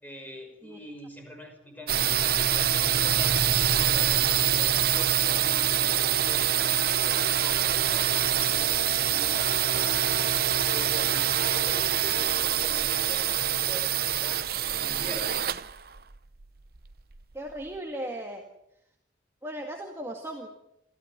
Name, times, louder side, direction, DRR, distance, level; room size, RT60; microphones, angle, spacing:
voice 1, 0.0-3.5 3.8-10.2 10.7-14.5 14.8-15.5, equal, 10° left, 3 dB, 5.6 m, -44 dB
sound 1, 1.9-17.5, right 10 dB, 55° right, 0.8 m, -25 dB
voice 2, 17.3-18.4 19.4-20.5, right 1 dB, 15° right, 1 dB, 2.0 m, -36 dB
26.5 x 14.5 x 8.0 m, 0.81 s
head